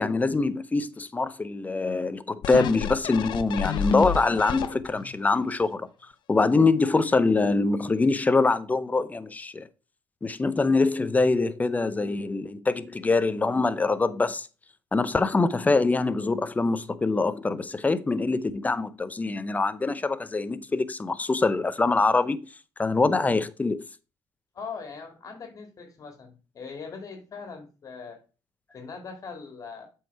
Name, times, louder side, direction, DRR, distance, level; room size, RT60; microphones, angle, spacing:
voice 1, 0.0-5.9 6.3-9.7 10.2-14.5 14.9-22.5 22.8-23.8, left 3 dB, 20° left, 0.7 m, -24 dB
sound 1, 2.4-5.1 5.6-5.7, left 8 dB, 65° left, 0.7 m, -30 dB
voice 2, 24.5-28.2 28.7-29.9, left 5 dB, 45° left, 2.1 m, -40 dB
7.6 x 4.7 x 4.6 m
cardioid pair, 90°, 8 cm